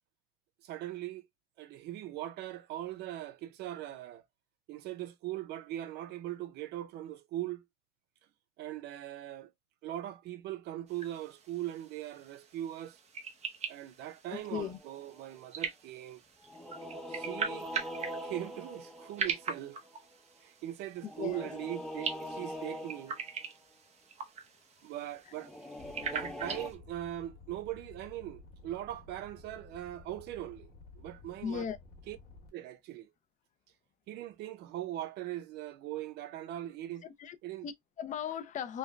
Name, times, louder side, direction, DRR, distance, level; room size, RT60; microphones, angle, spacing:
voice 1, 0.6-1.3 1.6-4.2 4.7-7.6 8.6-9.5 9.8-13.0 13.7-16.2 17.1-17.7 18.2-19.8 20.4-23.2 24.8-25.5 26.0-30.7 31.0-31.6 32.1-32.2 32.5-33.1 34.1-37.1 37.4-37.7, right 13 dB, 80° right, 0.5 m, -40 dB
sound 1, 10.9-26.8, right 5 dB, 40° right, 0.8 m, -42 dB
voice 2, 14.3-14.8 21.0-21.5 31.4-31.8 37.0-37.4 37.6-38.8, left 8 dB, 45° left, 0.5 m, -37 dB
sound 2, 14.4-15.2 16.4-20.0 21.0-23.4 25.3-26.7, equal, ahead, 0.6 m, -43 dB
sound 3, 25.8-32.5, left 3 dB, 65° left, 1.2 m, -54 dB
3.3 x 2.1 x 2.2 m
cardioid pair, 110°, 17 cm